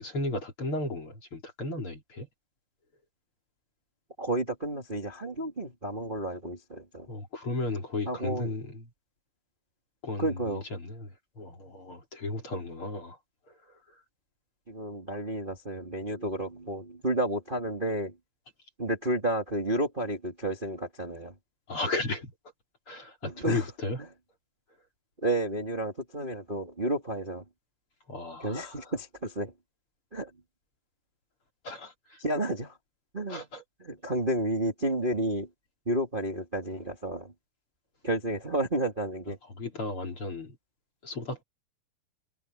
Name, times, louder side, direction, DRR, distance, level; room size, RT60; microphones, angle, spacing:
voice 1, 0.0-2.3 7.1-8.9 10.0-13.2 13.5-13.8 21.7-22.3 22.9-24.0 28.1-28.9 31.6-32.2 33.3-33.6 39.5-40.6 41.0-41.4, left 2 dB, 35° left, 4.2 m, -35 dB
voice 2, 4.2-7.1 8.1-8.5 10.2-10.6 14.7-18.1 18.8-21.3 23.2-23.6 25.2-27.4 28.4-29.5 30.1-30.3 32.2-32.7 33.1-33.4 33.8-35.5 35.9-37.3 38.0-39.4, right 1 dB, 15° right, 2.5 m, -31 dB
omnidirectional pair, 4.6 m